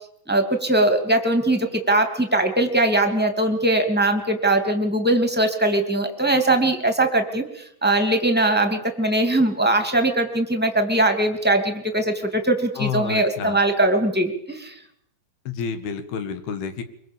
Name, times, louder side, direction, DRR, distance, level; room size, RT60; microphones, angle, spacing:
voice 1, 0.3-14.7, right 1 dB, 5° right, 6 dB, 1.7 m, -21 dB
voice 2, 12.8-13.6 15.5-16.8, left 7 dB, 90° left, 9 dB, 3.9 m, -29 dB
24.0 x 23.5 x 7.3 m, 0.71 s
omnidirectional pair, 4.3 m